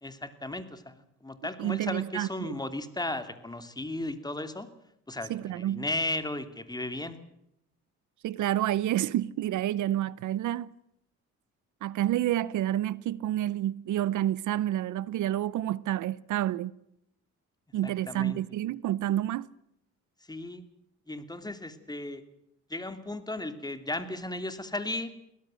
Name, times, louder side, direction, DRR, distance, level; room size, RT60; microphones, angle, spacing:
voice 1, 0.0-4.7 5.1-7.2 17.8-18.4 20.3-20.6 21.1-22.2 22.7-25.1, left 2 dB, 15° left, 2.8 m, -35 dB
voice 2, 1.6-2.5 5.3-5.8 8.2-10.7 11.8-16.7 17.7-19.5, right 13 dB, 75° right, 0.8 m, -29 dB
22.5 x 17.5 x 7.7 m
cardioid pair, 90°, 30 cm